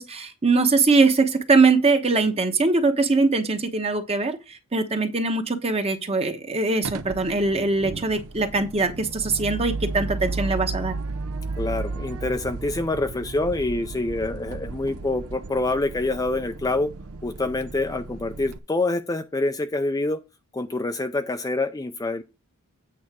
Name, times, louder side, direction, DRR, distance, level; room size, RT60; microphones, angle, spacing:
voice 1, 0.0-10.9, right 3 dB, 25° right, 1.0 m, -22 dB
sound 1, 6.8-18.6, right 3 dB, 70° right, 0.7 m, -34 dB
voice 2, 11.6-16.9 17.2-20.2 20.5-22.2, left 2 dB, 15° left, 0.5 m, -26 dB
8.7 x 4.0 x 6.1 m
head